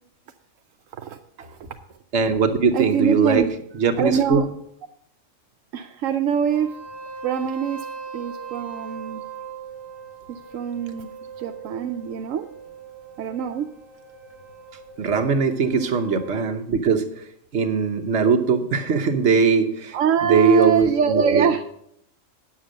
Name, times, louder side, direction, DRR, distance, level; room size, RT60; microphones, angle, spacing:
voice 1, 2.1-3.5 3.8-4.4 15.0-17.2 17.5-20.0 20.2-21.5, right 5 dB, 60° right, 4 dB, 1.3 m, -20 dB
voice 2, 2.7-3.5 4.0-4.5 5.7-6.8 7.2-7.9 8.1-9.2 10.3-11.1 11.4-12.5 13.2-13.7 19.9-21.6, right 7 dB, 80° right, 6 dB, 1.0 m, -24 dB
sound 1, 6.5-16.4, right 6 dB, 40° left, 4.7 m, -40 dB
9.7 x 7.3 x 6.4 m, 0.73 s
omnidirectional pair, 1.3 m